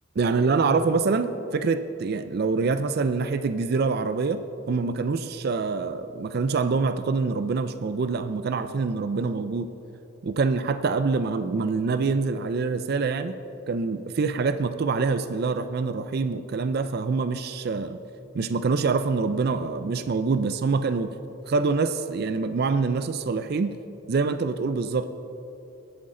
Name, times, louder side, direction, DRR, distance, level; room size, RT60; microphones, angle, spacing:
voice 1, 0.2-9.7 10.2-13.3 13.7-18.0 18.3-21.1 21.5-23.7 24.1-25.1, right 4 dB, 50° right, 10 dB, 0.4 m, -25 dB
19.0 x 8.0 x 3.8 m, 2.9 s
head